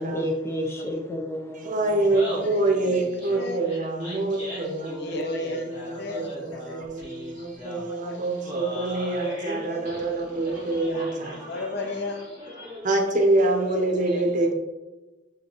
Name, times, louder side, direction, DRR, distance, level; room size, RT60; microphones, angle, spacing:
voice 1, 0.0-2.5, equal, 15° left, 2 dB, 0.7 m, -31 dB
voice 2, 1.6-11.4 12.8-14.5, right 2 dB, 40° right, 3 dB, 0.8 m, -26 dB
Laughter, 1.9-13.0, equal, 35° left, 2.0 m, -39 dB
voice 3, 4.9-5.7 6.0-6.8 7.8-8.2 9.6-9.8 10.5-11.0 11.5-12.6 13.7-14.4, left 2 dB, 60° left, 6 dB, 0.6 m, -35 dB
5.6 x 5.5 x 3.0 m, 1.1 s
head